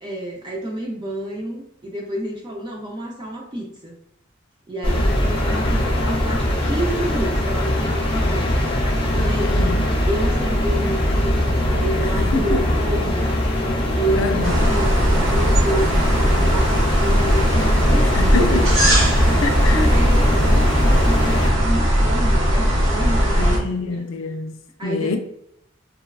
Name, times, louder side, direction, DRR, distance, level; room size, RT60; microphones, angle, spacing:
voice 1, 0.0-4.0 4.7-8.7 9.1-9.7 10.1-13.3 13.6-18.7 19.2-24.0 24.8-25.2, right 1 dB, 25° right, 0.4 m, -29 dB
sound 1, 4.8-21.5, left 1 dB, 25° left, 0.7 m, -21 dB
voice 2, 9.4-9.8 12.0-12.6 14.2-14.7 18.0-18.7 19.4-19.9 23.4-25.2, left 3 dB, 80° left, 0.4 m, -26 dB
sound 2, 14.4-23.6, equal, 70° right, 0.7 m, -18 dB
3.0 x 2.2 x 2.3 m
head